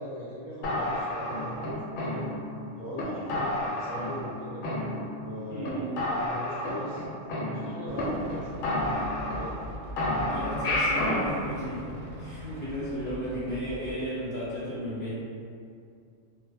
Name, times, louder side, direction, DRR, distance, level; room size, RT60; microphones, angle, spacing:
voice 1, 0.0-2.3 2.8-4.7 5.2-7.1 7.5-9.5 12.4-12.7, equal, 30° right, -8 dB, 0.5 m, -40 dB
sound 1, 0.6-2.6 3.0-3.1 3.3-4.3 4.6-5.3 5.6-5.7 6.0-8.0 8.3-8.4 8.6-9.7 10.0-11.3, left 1 dB, 90° left, 1.0 m, -30 dB
voice 2, 5.5-5.9 10.3-15.1, equal, 50° left, -9 dB, 0.8 m, -34 dB
sound 2, 7.9-14.1, equal, 65° right, 0.7 m, -41 dB
2.1 x 2.1 x 3.3 m, 2.4 s
omnidirectional pair, 1.3 m